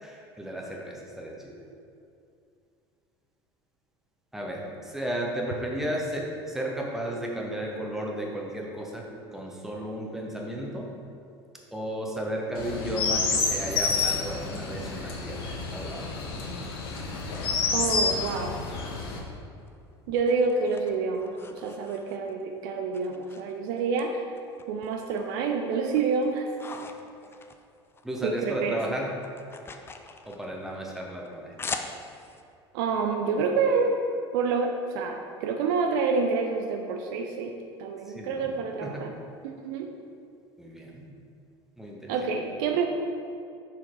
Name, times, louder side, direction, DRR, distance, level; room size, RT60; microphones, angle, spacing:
voice 1, 0.0-1.6 4.3-9.0 9.3-10.9 11.7-16.1 26.7-26.8 28.0-29.1 30.2-31.6 38.1-39.0 40.6-41.0 41.8-42.2, right 1 dB, 5° right, -2 dB, 1.1 m, -34 dB
Chirp tweet, 12.5-19.2, left 4 dB, 60° left, 1.0 m, -29 dB
voice 2, 17.7-18.6 20.1-24.2 24.7-26.5 28.2-28.8 32.7-34.0 34.3-39.1 39.4-39.9 42.1-42.9, right 4 dB, 55° right, 4 dB, 0.5 m, -28 dB
sound 1, 19.6-22.4 22.9-24.0 24.4-25.4 25.7-28.3 28.6-32.4, left 4 dB, 15° left, 0.4 m, -42 dB
6.3 x 4.4 x 4.6 m, 2.5 s
figure-of-eight pair, 70°, 14 cm